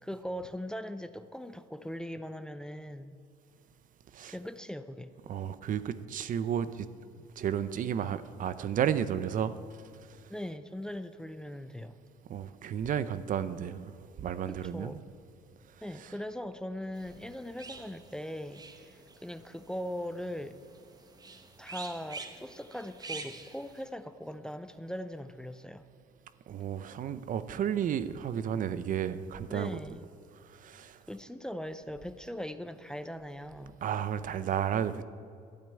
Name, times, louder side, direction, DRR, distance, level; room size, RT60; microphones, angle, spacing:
voice 1, 0.0-3.1 4.3-5.1 10.3-11.9 14.5-15.0 15.8-18.9 19.2-20.6 21.6-25.8 29.5-30.0 31.1-33.8, equal, 5° left, 11 dB, 0.5 m, -40 dB
voice 2, 5.3-6.9 7.4-9.5 12.3-14.9 26.5-29.8 30.6-31.0 33.8-35.0, right 9 dB, 50° right, 14 dB, 0.6 m, -32 dB
sound 1, 16.9-23.8, right 4 dB, 25° right, 1.2 m, -47 dB
12.0 x 8.9 x 8.9 m, 2.4 s
cardioid pair, 110°, 17 cm